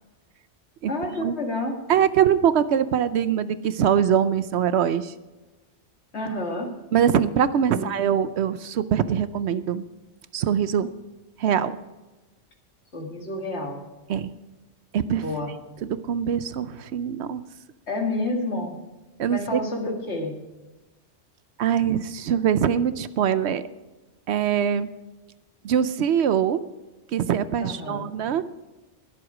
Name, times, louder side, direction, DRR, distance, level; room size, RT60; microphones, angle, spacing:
voice 1, 0.9-1.8 6.1-6.7 7.7-8.2 12.9-13.8 15.2-15.5 17.9-18.8 19.3-20.3 27.6-28.1, left 2 dB, 65° left, 2 dB, 2.3 m, -29 dB
voice 2, 1.9-5.1 6.9-9.8 10.3-10.9 11.4-11.8 14.1-14.3 14.9-15.2 15.8-17.4 19.2-19.6 21.6-23.6 24.3-24.9 25.6-26.6 27.1-28.4, right 8 dB, 70° right, 14 dB, 0.8 m, -23 dB
20.5 x 7.9 x 4.9 m, 1.1 s
omnidirectional pair, 1.2 m